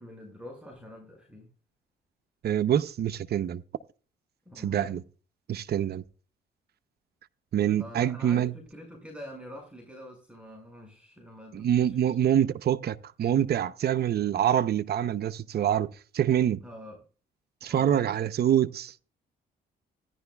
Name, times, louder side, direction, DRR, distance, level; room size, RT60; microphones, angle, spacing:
voice 1, 0.0-1.5 4.5-5.0 7.7-12.2 14.4-14.6 16.6-17.0 17.7-18.1, left 1 dB, 5° right, 5.3 m, -46 dB
voice 2, 2.4-3.6 4.6-5.0 5.5-6.0 7.5-8.5 11.5-16.6 17.6-19.0, right 10 dB, 55° right, 0.7 m, -25 dB
16.5 x 10.5 x 2.3 m
supercardioid pair, 70°, 19 cm